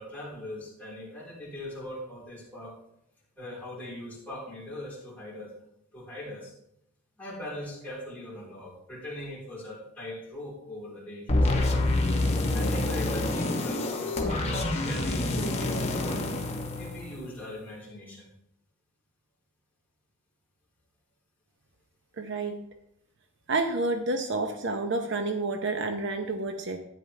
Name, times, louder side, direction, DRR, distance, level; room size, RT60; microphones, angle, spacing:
voice 1, 0.0-2.7 3.4-5.5 5.9-6.5 7.2-11.8 12.5-16.3 16.7-18.3, left 1 dB, 10° left, -6 dB, 3.3 m, -41 dB
sound 1, 11.3-17.4, left 2 dB, 30° left, 1.1 m, -27 dB
voice 2, 22.2-22.6 23.5-26.8, right 3 dB, 60° right, 6 dB, 0.8 m, -29 dB
11.0 x 9.3 x 3.3 m, 0.78 s
head